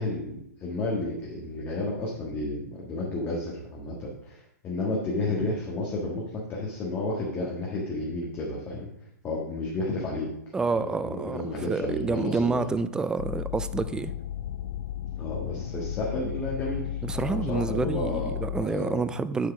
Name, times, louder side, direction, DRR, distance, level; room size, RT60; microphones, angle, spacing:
voice 1, 0.0-8.9 9.2-10.3 10.8-12.7 15.2-19.0, left 2 dB, 20° left, -3 dB, 1.6 m, -32 dB
voice 2, 10.5-11.4 11.7-14.1 17.0-19.5, right 4 dB, 10° right, 13 dB, 0.3 m, -28 dB
sound 1, 13.2-18.6, left 11 dB, 65° left, 0.5 m, -34 dB
8.1 x 4.7 x 6.1 m, 0.82 s
hypercardioid pair, 135°, 9 cm